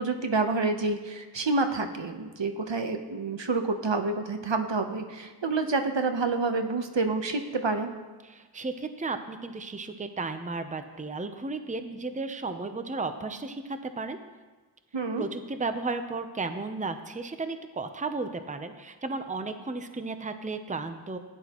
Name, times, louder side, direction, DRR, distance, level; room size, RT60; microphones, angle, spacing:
voice 1, 0.0-7.9 14.9-15.2, right 3 dB, 70° right, 6 dB, 1.0 m, -28 dB
voice 2, 8.2-14.2 15.2-21.2, right 3 dB, 15° right, 8 dB, 0.7 m, -34 dB
16.0 x 10.0 x 3.0 m, 1.3 s
wide cardioid pair, 55°, 46 cm